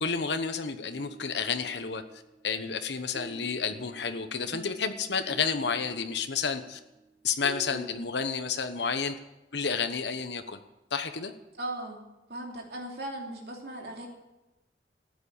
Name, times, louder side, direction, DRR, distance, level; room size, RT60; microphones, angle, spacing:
voice 1, 0.0-2.0 2.4-6.8 7.2-9.2 9.5-10.6 10.9-11.3, left 5 dB, 75° left, 8 dB, 1.1 m, -30 dB
sound 1, 0.9-2.7 3.1-8.0, right 1 dB, 20° right, 1.8 m, -48 dB
voice 2, 11.6-12.0 12.3-14.1, right 1 dB, 60° right, 1 dB, 3.0 m, -38 dB
14.0 x 9.6 x 8.5 m, 1.0 s
head